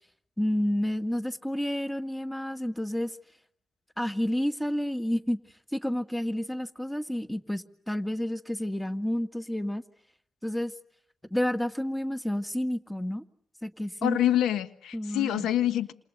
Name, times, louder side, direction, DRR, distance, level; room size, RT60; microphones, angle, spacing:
voice 1, 0.4-3.2 4.0-5.4 5.7-9.8 10.4-10.7 11.3-13.2 13.6-14.2 14.9-15.5, left 1 dB, 5° left, 10 dB, 2.0 m, -30 dB
voice 2, 14.0-15.9, left 12 dB, 80° left, 13 dB, 1.3 m, -26 dB
29.0 x 27.5 x 6.7 m, 0.69 s
hypercardioid pair, 45°, 0 cm